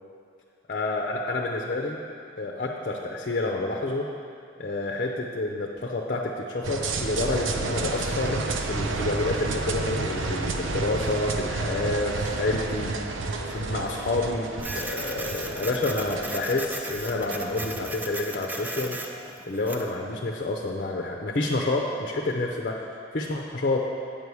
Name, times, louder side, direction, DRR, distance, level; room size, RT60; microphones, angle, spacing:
voice 1, 0.7-2.0 2.4-4.1 4.6-12.9 13.5-19.0 19.5-23.9, left 2 dB, 50° left, 0 dB, 0.6 m, -29 dB
sound 1, 6.6-17.9, right 3 dB, 80° right, 0.6 m, -31 dB
Printer, 14.6-19.9, right 1 dB, 10° right, 0.5 m, -36 dB
8.7 x 4.7 x 7.0 m, 2.4 s
head